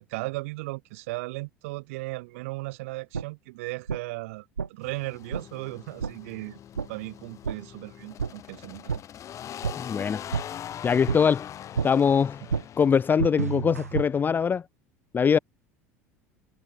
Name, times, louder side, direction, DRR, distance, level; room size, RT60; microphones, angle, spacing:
voice 1, 0.0-6.6 6.9-9.0 12.5-12.7, right 23 dB, 65° right, 5.0 m, -36 dB
sound 1, 3.1-3.2 3.9-4.0 4.6-4.7 5.3-5.4 6.0-6.1 6.7-6.9 7.4-7.6 8.2-8.3 8.9-9.0 9.6-9.7 10.3-10.4 11.1-11.2 11.7-11.9 12.5-12.6 13.2-14.1, right 6 dB, 85° right, 1.2 m, -28 dB
sound 2, 4.8-14.5, left 10 dB, 40° left, 7.2 m, -42 dB
voice 2, 9.8-10.2 10.8-11.5 11.8-12.4 12.8-14.6 15.1-15.4, left 6 dB, 25° left, 0.5 m, -22 dB
figure-of-eight pair, 70°, 8 cm